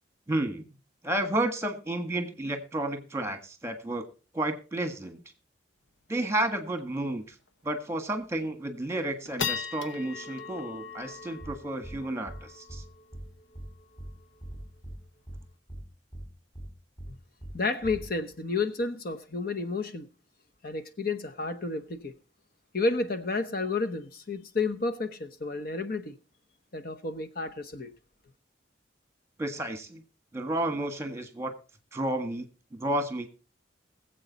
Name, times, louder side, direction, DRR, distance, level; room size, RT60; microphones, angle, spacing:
voice 1, 0.3-0.7 1.0-4.0 4.3-5.2 6.1-7.3 7.6-12.8 29.4-30.0 30.3-31.5 31.9-32.4 32.7-33.3, right 1 dB, 15° right, 1.5 m, -31 dB
sound 1, 5.9-6.0 6.3-6.4 6.7-7.0 7.5-7.6 8.1-8.5 8.9-15.5, left 6 dB, 85° left, 1.1 m, -40 dB
sound 2, 11.4-11.5 11.8-12.0 12.3-12.4 12.7-12.8 13.1-13.2 13.5-13.7 14.0-14.1 14.4-15.0 15.3-15.4 15.7-15.8 16.1-16.2 16.5-16.7 17.0-17.1 17.4-17.5 17.8-18.1, right 1 dB, 25° left, 5.3 m, -41 dB
voice 2, 17.5-20.1 20.6-22.1 22.7-26.1 26.7-27.9, left 3 dB, 50° left, 0.9 m, -31 dB
20.5 x 7.9 x 4.0 m
head